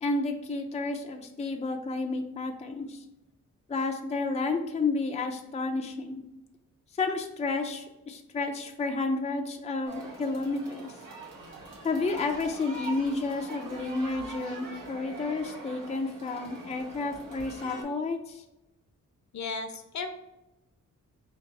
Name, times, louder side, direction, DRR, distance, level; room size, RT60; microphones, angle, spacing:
voice 1, 0.0-3.0 3.7-6.2 7.0-10.9 11.8-18.4, left 3 dB, 20° left, 3 dB, 0.4 m, -31 dB
sound 1, 9.8-17.8, right 3 dB, 85° right, 1.4 m, -43 dB
voice 2, 19.3-20.1, left 4 dB, 65° left, 7 dB, 0.7 m, -34 dB
4.5 x 2.5 x 4.0 m, 0.95 s
wide cardioid pair, 105°, 31 cm